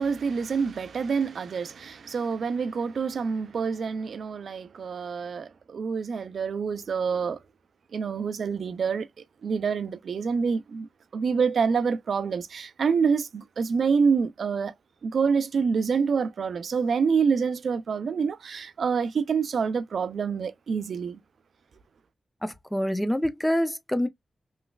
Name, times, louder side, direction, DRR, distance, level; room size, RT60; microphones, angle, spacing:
voice 1, 0.0-7.4 7.9-9.1 9.4-10.9 11.1-14.7 15.0-21.2, right 5 dB, 70° right, 0.4 m, -27 dB
voice 2, 22.4-24.1, equal, 5° left, 0.4 m, -26 dB
3.1 x 3.0 x 2.2 m
wide cardioid pair, 155°, 0 cm